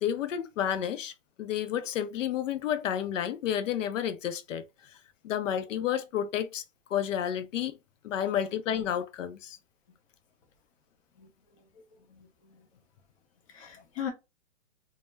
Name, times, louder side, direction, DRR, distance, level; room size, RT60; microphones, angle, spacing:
voice 1, 0.0-1.1 1.4-4.6 5.2-6.6 6.9-7.8 8.0-9.6, left 9 dB, 80° left, 0.5 m, -30 dB
voice 2, 11.2-11.6 12.1-12.7 13.5-14.1, left 9 dB, 25° left, 0.5 m, -40 dB
2.1 x 2.1 x 3.1 m
hypercardioid pair, 155°, 37 cm